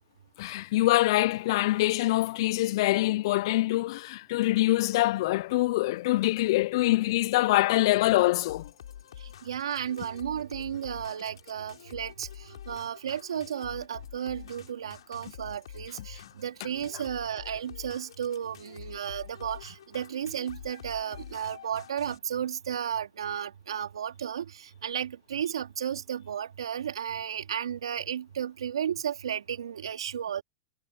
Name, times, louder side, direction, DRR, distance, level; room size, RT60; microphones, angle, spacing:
voice 1, 0.4-8.7, left 17 dB, 60° left, 0.4 m, -24 dB
sound 1, 8.5-22.2, left 10 dB, 80° left, 6.9 m, -47 dB
voice 2, 9.2-30.4, right 9 dB, 85° right, 2.9 m, -34 dB
hypercardioid pair, 115°, 3 cm